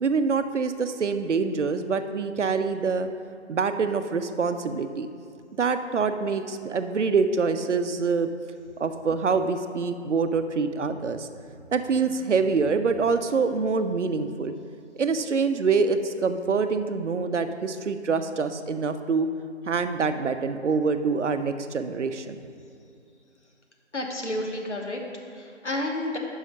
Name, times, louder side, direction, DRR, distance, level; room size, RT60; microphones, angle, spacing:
voice 1, 0.0-3.1 3.5-5.1 5.6-8.3 8.8-11.3 11.7-14.5 15.0-19.3 19.7-22.4, right 5 dB, 75° right, 9 dB, 0.6 m, -25 dB
voice 2, 23.9-25.0 25.3-26.2, left 1 dB, 75° left, 1 dB, 1.3 m, -30 dB
6.1 x 5.6 x 5.4 m, 2.4 s
figure-of-eight pair, 175°, 36 cm